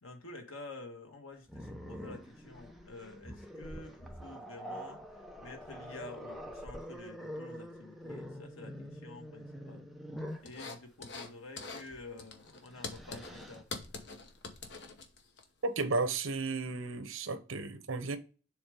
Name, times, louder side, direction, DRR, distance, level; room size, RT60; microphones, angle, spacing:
voice 1, 0.0-5.0 5.4-9.8 10.4-13.7, left 2 dB, 90° left, 1.5 m, -49 dB
Growling, 1.5-10.5 11.9-12.1 12.5-13.6, equal, ahead, 0.7 m, -45 dB
sound 1, 10.5-11.3 11.6-11.9 12.2-15.4, left 4 dB, 55° left, 0.9 m, -44 dB
voice 2, 15.6-18.2, right 3 dB, 80° right, 0.9 m, -33 dB
7.1 x 3.3 x 4.8 m
head